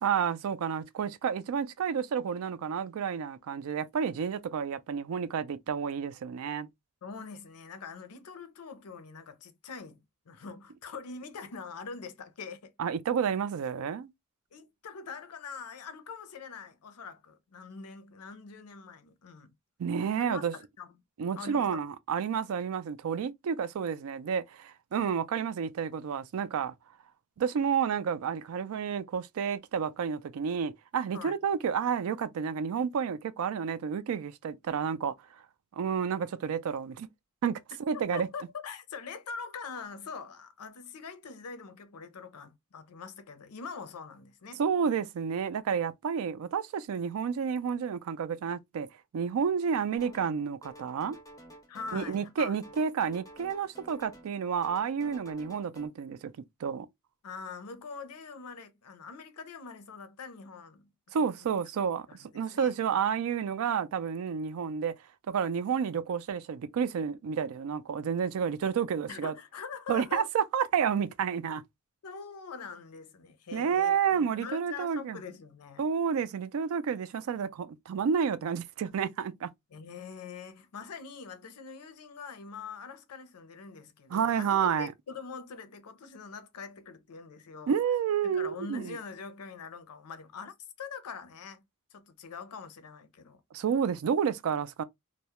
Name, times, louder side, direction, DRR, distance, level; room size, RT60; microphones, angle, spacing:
voice 1, 0.0-6.7 12.8-14.1 19.8-20.5 21.2-26.7 27.4-35.1 35.7-37.1 37.4-38.3 44.6-48.9 49.1-51.2 51.9-56.3 56.6-56.9 61.1-64.9 65.3-69.3 69.9-71.6 73.5-75.2 75.8-79.5 84.1-84.9 87.7-89.0 93.5-94.8, right 7 dB, 70° right, 0.3 m, -30 dB
voice 2, 7.0-12.7 14.5-19.5 20.2-20.9 21.3-21.8 31.1-31.4 37.9-44.6 51.7-52.6 57.2-60.9 62.1-62.9 69.1-70.3 72.0-75.9 79.7-87.8 88.2-91.6 91.9-93.4, left 5 dB, 85° left, 0.5 m, -43 dB
sound 1, 50.0-50.4 50.6-52.4 52.6-54.4 54.6-55.9, right 1 dB, 15° left, 0.4 m, -51 dB
2.2 x 2.0 x 2.8 m
head